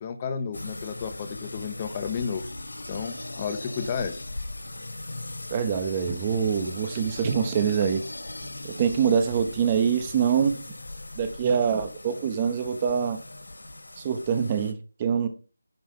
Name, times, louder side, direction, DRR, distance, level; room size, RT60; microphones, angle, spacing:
voice 1, 0.0-2.5 2.9-4.2, left 6 dB, 20° left, 0.8 m, -32 dB
sound 1, 0.5-14.7, left 2 dB, 80° left, 2.7 m, -39 dB
voice 2, 5.5-8.0 8.6-10.6 11.2-13.2 14.0-15.3, right 7 dB, 20° right, 0.9 m, -25 dB
10.5 x 5.7 x 5.5 m
figure-of-eight pair, 170°, 0 cm